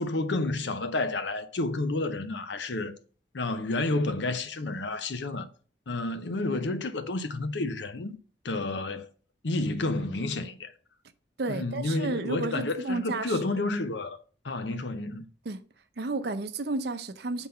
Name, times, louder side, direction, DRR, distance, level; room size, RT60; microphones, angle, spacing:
voice 1, 0.0-3.0 3.3-5.5 5.9-8.2 8.4-9.1 9.4-10.7 11.5-14.2 14.4-15.3, left 2 dB, 70° left, 0.7 m, -30 dB
voice 2, 11.4-13.4 15.4-15.6 16.0-17.5, right 2 dB, 55° right, 0.6 m, -32 dB
5.7 x 4.0 x 5.6 m
head